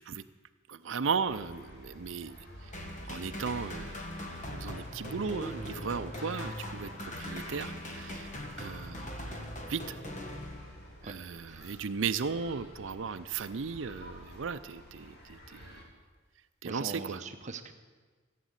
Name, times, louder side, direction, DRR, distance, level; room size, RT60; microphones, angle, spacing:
voice 1, 0.7-2.4 3.1-4.0 4.5-6.9 7.2-8.3 8.6-9.1 9.7-10.0 11.0-15.6 16.6-17.2, right 5 dB, 70° right, 10 dB, 0.5 m, -36 dB
sound 1, 1.3-15.8, equal, 55° left, 2.4 m, -50 dB
sound 2, 2.7-11.0, left 1 dB, 40° left, 1.6 m, -41 dB
voice 2, 16.6-17.7, right 3 dB, 35° right, 8 dB, 0.8 m, -41 dB
15.5 x 8.4 x 8.0 m, 1.4 s
head